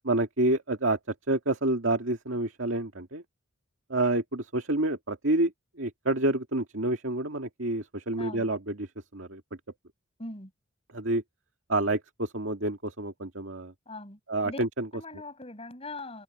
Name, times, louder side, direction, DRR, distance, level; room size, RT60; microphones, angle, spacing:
voice 1, 0.0-3.2 3.9-5.5 5.8-9.4 10.9-11.2 11.7-13.7 14.3-14.9, right 2 dB, 70° right, 2.2 m, -28 dB
voice 2, 8.2-8.5 10.2-10.5 13.9-14.2 14.4-14.6 14.9-16.2, left 2 dB, 30° left, 6.8 m, -40 dB
head